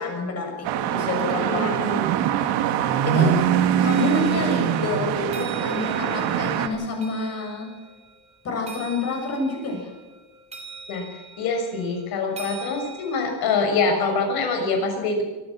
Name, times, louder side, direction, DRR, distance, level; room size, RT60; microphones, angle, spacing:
voice 1, 0.0-1.7 2.2-2.5 3.1-3.3 3.8-7.7 8.4-9.9, left 3 dB, 35° left, 2 dB, 7.2 m, -28 dB
sound 1, 0.6-6.7, right 9 dB, 75° right, 2.4 m, -23 dB
voice 2, 1.3-2.0 3.0-3.3 10.9-11.1 11.4-15.2, left 4 dB, 55° left, 4 dB, 6.3 m, -25 dB
sound 2, 3.9-13.6, right 3 dB, 15° right, 4.2 m, -44 dB
24.0 x 15.5 x 7.6 m, 1.2 s
cardioid pair, 170°, 44 cm